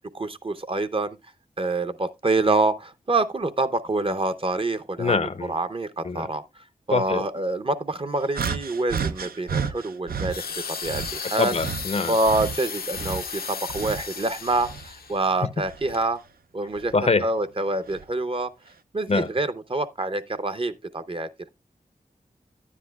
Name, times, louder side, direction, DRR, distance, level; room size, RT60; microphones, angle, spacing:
voice 1, 0.1-1.2 1.6-6.4 6.9-11.5 12.1-16.2 16.5-16.9 17.2-18.5 18.9-21.3, right 2 dB, 35° right, 0.6 m, -26 dB
voice 2, 5.0-5.5 6.0-6.3 6.9-7.2 11.4-12.2 16.9-17.2 19.1-19.3, left 4 dB, 45° left, 0.5 m, -24 dB
sound 1, 8.3-10.4 10.8-14.2 14.5-16.0 16.8-16.9 17.9-18.0, right 6 dB, 85° right, 0.5 m, -32 dB
sound 2, 10.3-15.2 15.9-16.1, left 6 dB, 85° left, 0.7 m, -35 dB
9.9 x 9.7 x 2.3 m
wide cardioid pair, 60°, 15 cm